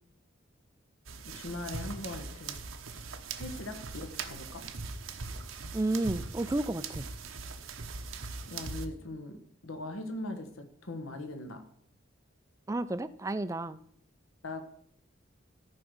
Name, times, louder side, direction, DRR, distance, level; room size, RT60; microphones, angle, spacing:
sound 1, 1.1-8.9, right 4 dB, 85° right, 1.1 m, -41 dB
voice 1, 1.2-2.6 3.4-4.7 8.5-11.6 14.4-14.6, left 2 dB, 85° left, 7 dB, 1.4 m, -40 dB
voice 2, 5.7-7.1 12.7-13.8, right 2 dB, 15° right, 14 dB, 0.4 m, -31 dB
14.5 x 4.9 x 6.4 m, 0.65 s
head